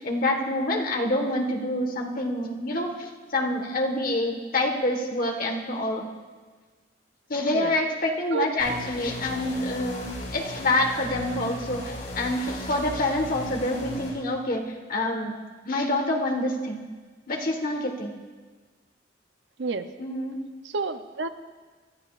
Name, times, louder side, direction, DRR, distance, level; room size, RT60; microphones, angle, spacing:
voice 1, 0.0-6.1 7.3-16.8 17.3-18.1 20.0-20.4, left 1 dB, 50° left, 2 dB, 1.4 m, -27 dB
sound 1, 8.6-14.1, left 1 dB, 65° left, 4.1 m, -37 dB
voice 2, 20.6-21.3, right 4 dB, 75° right, 10 dB, 0.6 m, -29 dB
22.5 x 13.5 x 2.5 m, 1.4 s
head